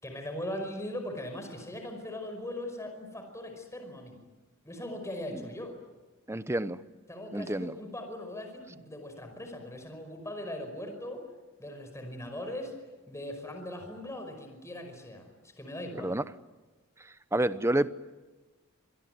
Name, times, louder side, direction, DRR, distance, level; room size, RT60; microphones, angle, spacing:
voice 1, 0.0-4.2 4.6-5.7 7.1-11.2 11.6-12.7 13.1-16.2, left 1 dB, 15° left, 5 dB, 5.3 m, -40 dB
voice 2, 6.3-6.8 7.3-7.7 16.0-16.2 17.3-17.9, right 1 dB, 15° right, 14 dB, 0.8 m, -28 dB
26.5 x 21.5 x 9.5 m, 1.2 s
head